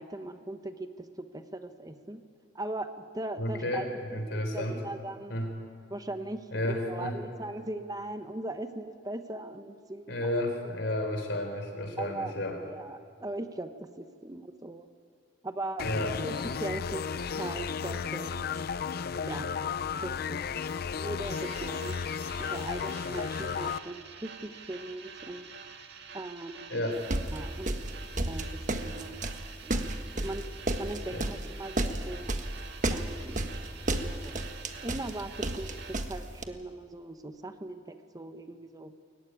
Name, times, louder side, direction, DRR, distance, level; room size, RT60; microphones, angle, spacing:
voice 1, 0.0-2.2 2.5-5.4 5.9-10.3 12.0-14.9 15.4-18.3 19.2-19.5 20.0-20.4 20.8-22.0 22.4-25.5 26.1-26.8 27.3-27.9 28.3-29.2 29.6-29.9 30.2-30.5 30.8-32.4 32.9-33.5 34.0-34.4 34.8-38.9, right 2 dB, 20° right, 8 dB, 0.9 m, -39 dB
voice 2, 3.4-4.8 5.3-5.5 6.5-7.2 10.1-12.6 15.8-16.2 26.7-27.0 31.1-31.2, left 1 dB, 75° left, 4 dB, 4.1 m, -32 dB
sound 1, 15.8-23.8, left 6 dB, 55° left, 0.5 m, -34 dB
sound 2, 21.2-36.0, right 6 dB, 65° right, 1.8 m, -47 dB
sound 3, 27.1-36.4, right 1 dB, 45° right, 1.3 m, -32 dB
22.0 x 15.0 x 9.9 m, 2.2 s
head